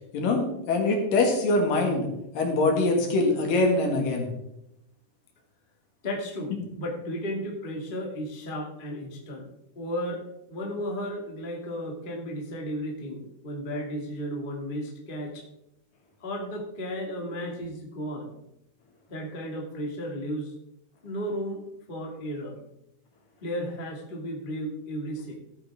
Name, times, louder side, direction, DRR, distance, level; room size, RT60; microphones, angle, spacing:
voice 1, 0.1-2.1 2.3-4.3, left 2 dB, 60° left, 2 dB, 3.3 m, -23 dB
voice 2, 6.0-9.5 9.7-10.2 10.5-15.4 16.2-18.3 19.1-20.5 21.0-22.6 23.4-25.4, equal, 25° left, -1 dB, 1.1 m, -34 dB
15.0 x 9.3 x 3.5 m, 0.85 s
omnidirectional pair, 4.7 m